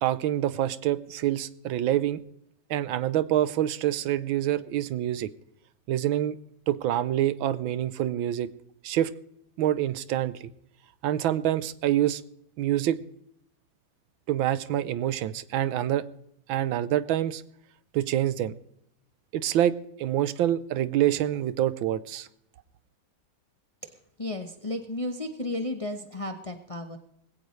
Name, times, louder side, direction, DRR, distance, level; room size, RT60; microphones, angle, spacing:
voice 1, 0.0-2.2 2.7-5.3 5.9-6.4 6.7-8.5 8.8-9.1 9.6-10.5 11.0-12.2 12.6-13.0 14.3-16.0 16.5-17.4 17.9-18.5 19.3-22.3, right 12 dB, 85° right, 15 dB, 1.5 m, -26 dB
voice 2, 24.2-27.0, left 1 dB, 25° left, 5 dB, 0.7 m, -33 dB
20.0 x 16.5 x 3.2 m, 0.72 s
omnidirectional pair, 2.1 m